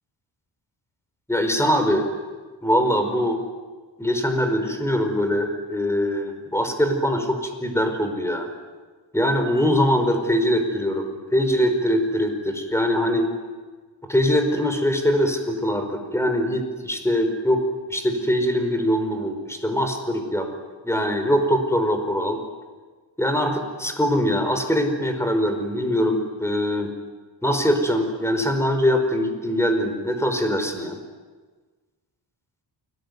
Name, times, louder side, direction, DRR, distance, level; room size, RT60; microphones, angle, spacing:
voice 1, 1.3-2.0 2.6-3.4 4.0-8.5 9.1-13.3 14.1-17.6 17.9-20.5 20.8-22.4 23.2-26.9 27.4-31.0, equal, 5° left, 6 dB, 5.0 m, -22 dB
29.5 x 21.0 x 9.6 m, 1.4 s
wide cardioid pair, 120°, 45 cm